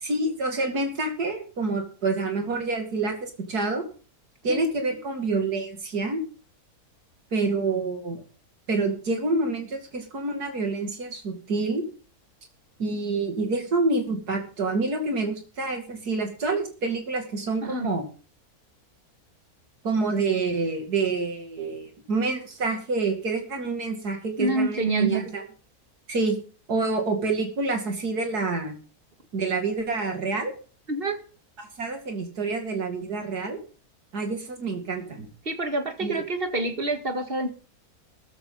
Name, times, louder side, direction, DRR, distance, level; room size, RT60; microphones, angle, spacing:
voice 1, 0.0-3.8 4.4-6.2 7.3-8.2 8.7-11.8 12.8-18.0 19.8-25.4 26.1-26.4 26.7-28.7 29.3-30.5 31.6-33.6 34.1-35.3 36.0-36.2, right 3 dB, 85° right, 3 dB, 3.0 m, -27 dB
voice 2, 24.4-25.3 30.9-31.2 35.5-37.5, right 2 dB, 40° right, 5 dB, 2.1 m, -27 dB
14.5 x 13.0 x 3.9 m, 0.38 s
omnidirectional pair, 1.6 m